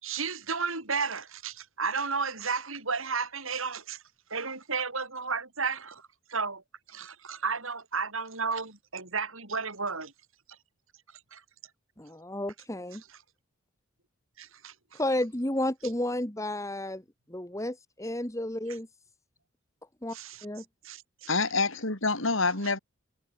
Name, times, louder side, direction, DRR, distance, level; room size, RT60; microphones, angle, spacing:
voice 1, 0.0-4.0 4.3-6.6 6.9-10.1 11.3-11.4 14.4-15.0 20.1-20.4 20.8-21.3, right 5 dB, 70° right, 7.4 m, -33 dB
voice 2, 12.0-13.0 14.9-17.0 17.3-18.9 20.0-20.2 20.4-20.6, left 1 dB, 15° left, 1.9 m, -32 dB
voice 3, 21.3-22.8, left 3 dB, 65° left, 4.5 m, -27 dB
head